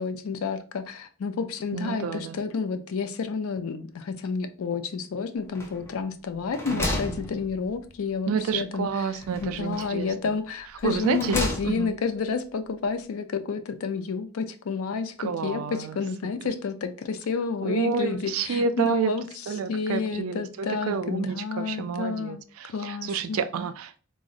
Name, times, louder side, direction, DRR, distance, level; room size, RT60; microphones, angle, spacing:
voice 1, 0.0-9.1 9.4-15.6 15.9-19.2 19.7-22.4 22.7-23.4, left 5 dB, 85° left, 0.4 m, -30 dB
voice 2, 1.7-2.4 6.7-7.2 8.3-10.4 10.8-11.4 11.6-12.0 15.2-16.3 17.6-19.1 19.5-24.0, right 5 dB, 85° right, 0.4 m, -29 dB
sound 1, 5.5-6.0 6.4-8.0 9.2-10.1 10.8-12.0, left 1 dB, 10° left, 0.5 m, -33 dB
3.7 x 2.0 x 2.4 m
head